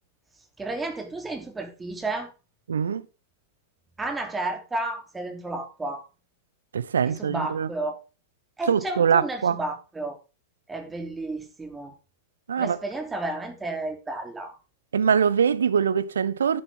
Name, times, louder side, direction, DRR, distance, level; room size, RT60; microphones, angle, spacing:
voice 1, 0.6-2.3 4.0-6.0 7.1-8.0 8.6-10.2 10.7-11.9 12.6-14.6, right 2 dB, 10° right, 3.3 m, -32 dB
voice 2, 2.7-3.0 6.7-7.7 8.7-9.6 12.5-12.8 14.9-16.6, right 7 dB, 70° right, 0.9 m, -23 dB
11.0 x 9.4 x 3.7 m
figure-of-eight pair, 95°, 0 cm